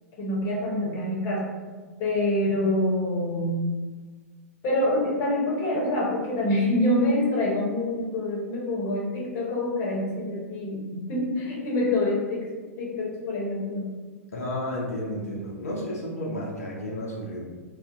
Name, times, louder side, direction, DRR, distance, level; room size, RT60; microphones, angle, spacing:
voice 1, 0.2-1.5 2.0-3.6 4.6-12.4 12.8-14.0, left 1 dB, 40° left, -3 dB, 0.8 m, -26 dB
voice 2, 14.3-17.5, left 1 dB, 75° left, -4 dB, 0.5 m, -32 dB
2.4 x 2.1 x 2.6 m, 1.4 s
figure-of-eight pair, 100°, 8 cm